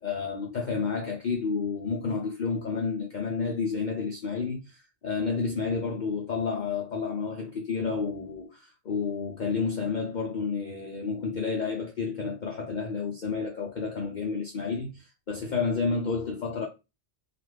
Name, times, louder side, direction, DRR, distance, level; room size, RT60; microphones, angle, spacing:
voice 1, 0.0-16.7, left 5 dB, 55° left, 0.5 m, -30 dB
2.3 x 2.3 x 3.2 m
omnidirectional pair, 1.2 m